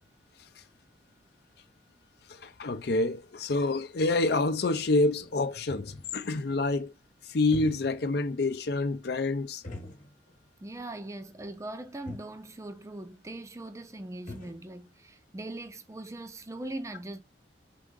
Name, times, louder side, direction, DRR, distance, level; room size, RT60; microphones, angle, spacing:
voice 1, 2.3-6.9 7.3-9.6, left 2 dB, 60° left, 0.5 m, -27 dB
sound 1, 5.1-6.3 7.3-8.2 8.5-8.6 9.6-10.5 10.8-10.9 11.7-11.8 12.0-12.4 13.7-13.8 14.0-14.6, left 2 dB, 45° left, 1.1 m, -45 dB
voice 2, 10.6-17.2, right 2 dB, 15° right, 0.4 m, -40 dB
3.7 x 3.6 x 3.7 m
head